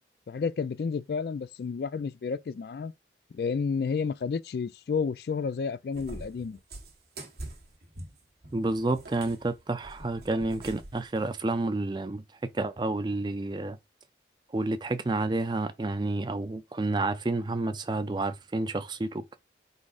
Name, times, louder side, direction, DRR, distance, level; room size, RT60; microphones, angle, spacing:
voice 1, 0.3-2.9 3.3-6.6, left 5 dB, 60° left, 0.3 m, -31 dB
Cat, 5.9-11.0, right 1 dB, 60° right, 1.3 m, -45 dB
voice 2, 8.5-13.8 14.5-19.4, right 2 dB, 25° right, 0.4 m, -30 dB
4.8 x 4.0 x 2.4 m
head